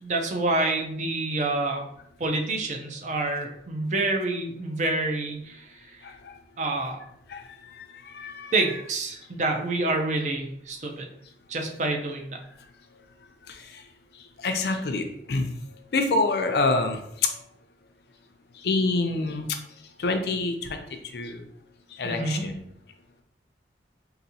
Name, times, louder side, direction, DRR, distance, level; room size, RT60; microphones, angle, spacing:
voice 1, 0.0-1.8 2.2-6.0 6.6-7.0 8.5-11.1 11.5-12.4 22.0-22.4, right 2 dB, 40° right, 2 dB, 0.5 m, -27 dB
voice 2, 6.0-6.3 7.3-8.5 13.5-13.8 14.4-15.5 15.9-17.3 18.6-19.5 20.0-20.8 21.1-21.4 21.9-22.6, left 3 dB, 65° left, 6 dB, 0.5 m, -27 dB
3.9 x 2.6 x 2.7 m, 0.73 s
head